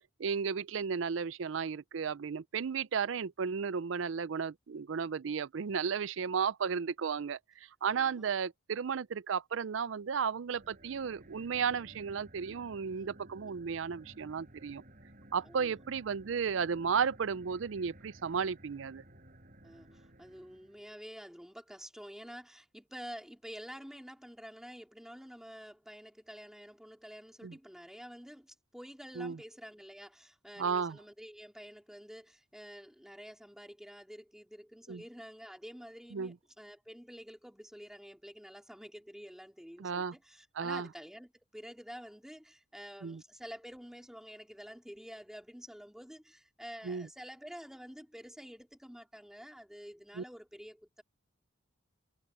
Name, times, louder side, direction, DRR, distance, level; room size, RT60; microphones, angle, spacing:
voice 1, 0.2-7.4 7.8-14.8 15.3-19.0 27.4-27.6 29.2-29.4 30.6-31.0 34.9-35.0 36.1-36.3 39.8-40.1 40.5-40.9 43.0-43.2 46.8-47.1 50.1-50.2, right 6 dB, 65° right, 0.5 m, -34 dB
voice 2, 8.0-8.4 12.9-13.1 13.4-13.5 15.4-15.7 19.6-51.0, equal, 5° right, 3.8 m, -49 dB
sound 1, 10.5-20.9, right 1 dB, 45° right, 6.5 m, -56 dB
head